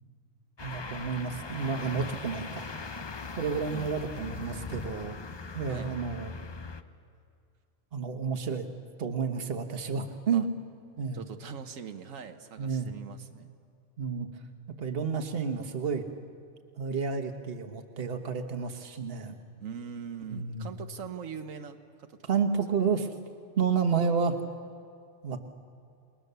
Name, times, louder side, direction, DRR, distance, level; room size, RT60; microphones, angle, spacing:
sound 1, 0.6-6.8, left 4 dB, 30° left, 0.5 m, -40 dB
voice 1, 0.6-2.7 3.4-5.2 5.5-6.3 7.9-8.7 9.0-10.5 11.0-11.2 12.6-12.9 14.0-14.3 14.7-16.1 16.8-19.4 20.3-20.7 22.3-23.1 23.6-24.4 25.2-25.4, right 6 dB, 50° right, 6 dB, 1.4 m, -30 dB
voice 2, 11.1-13.5 19.6-22.2, right 7 dB, 90° right, 7 dB, 1.4 m, -41 dB
29.5 x 20.0 x 6.8 m, 2.3 s
omnidirectional pair, 1.3 m